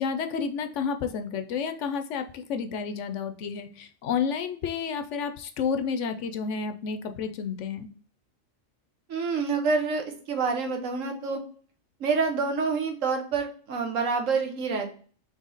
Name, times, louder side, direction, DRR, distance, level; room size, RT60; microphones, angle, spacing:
voice 1, 0.0-7.9, left 6 dB, 70° left, 8 dB, 0.9 m, -30 dB
voice 2, 9.1-11.4 12.0-14.9, right 4 dB, 80° right, 3 dB, 1.3 m, -27 dB
4.1 x 3.1 x 3.8 m, 0.43 s
omnidirectional pair, 1.3 m